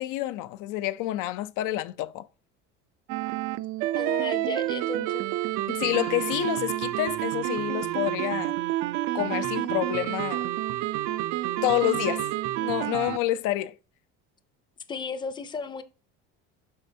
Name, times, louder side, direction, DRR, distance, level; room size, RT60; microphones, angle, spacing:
voice 1, 0.0-2.3 5.7-8.5 9.1-10.5 11.6-12.3 12.6-13.8, left 15 dB, 70° left, 0.5 m, -28 dB
sound 1, 3.1-13.2, right 15 dB, 70° right, 0.5 m, -29 dB
voice 2, 4.0-5.3 14.9-15.8, left 4 dB, 15° left, 0.5 m, -34 dB
11.5 x 4.2 x 2.7 m
cardioid pair, 140°, 31 cm